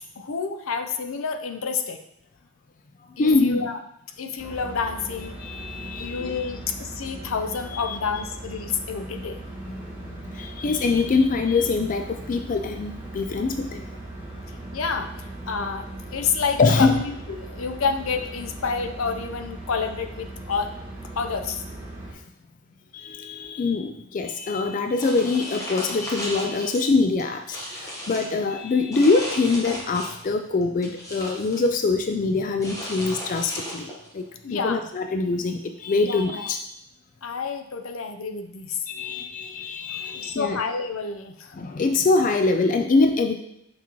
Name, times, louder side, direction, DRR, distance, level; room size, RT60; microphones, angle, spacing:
voice 1, 0.2-2.0 3.2-3.8 4.2-5.4 6.0-9.4 14.7-20.7 21.2-21.6 34.4-34.9 36.0-36.5 37.2-38.8 40.1-41.6, left 5 dB, 85° left, 7 dB, 0.6 m, -29 dB
voice 2, 3.2-3.6 5.4-6.5 7.7-8.0 9.7-13.8 16.6-16.9 22.9-34.2 34.5-36.6 38.9-40.6 41.5-43.4, left 3 dB, 40° left, 6 dB, 0.3 m, -24 dB
sound 1, 4.4-22.1, right 1 dB, 10° right, 1.7 m, -39 dB
sound 2, 25.0-26.8 27.2-28.3 28.9-30.3 30.6-31.7 32.6-34.1, equal, 15° left, 1.2 m, -35 dB
6.0 x 5.7 x 3.0 m, 0.76 s
head